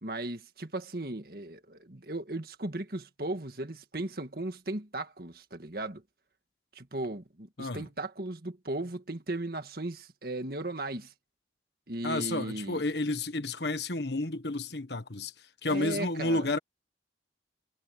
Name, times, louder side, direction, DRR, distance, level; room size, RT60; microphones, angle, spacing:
voice 1, 0.0-6.0 6.8-11.1 11.9-12.8 15.7-16.5, right 2 dB, 55° right, 1.8 m, -36 dB
voice 2, 12.0-15.3 15.6-16.6, left 2 dB, 70° left, 1.5 m, -31 dB
head